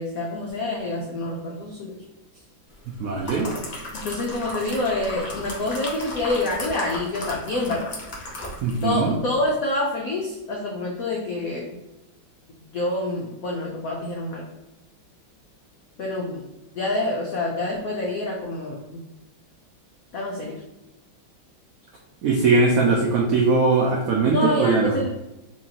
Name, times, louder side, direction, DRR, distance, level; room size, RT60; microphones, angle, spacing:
voice 1, 0.0-2.0 4.0-8.0 8.8-11.8 12.7-14.5 16.0-16.5 16.7-19.0 20.1-20.6 24.2-25.1, left 2 dB, 85° left, -1 dB, 0.7 m, -27 dB
sound 1, 2.9-9.0 9.3-9.5, left 1 dB, 50° left, 0.4 m, -35 dB
voice 2, 3.0-3.5 8.6-9.1 22.2-25.0, right 3 dB, 85° right, 0 dB, 0.7 m, -20 dB
4.4 x 2.8 x 2.8 m, 0.99 s
omnidirectional pair, 2.2 m